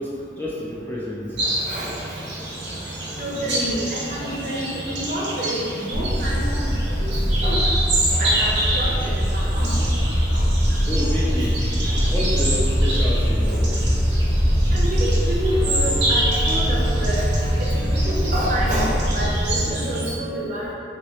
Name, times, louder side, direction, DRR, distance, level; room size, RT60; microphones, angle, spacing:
voice 1, 0.0-1.7 10.9-11.7 12.1-13.5, left 1 dB, 10° left, -6 dB, 0.3 m, -29 dB
voice 2, 1.4-2.3 3.2-7.7 8.1-10.0 10.3-10.4 11.0-11.1 11.8-12.0 12.6-12.7 13.5-13.7 14.7-20.7, equal, 45° right, -4 dB, 0.5 m, -29 dB
sound 1, 1.4-20.1, right 1 dB, 85° right, 0.7 m, -28 dB
sound 2, 5.9-19.6, equal, 30° left, 1.1 m, -22 dB
Wind instrument woodwind instrument, 14.9-19.1, right 3 dB, 80° left, 1.0 m, -35 dB
2.7 x 2.7 x 3.0 m, 2.5 s
head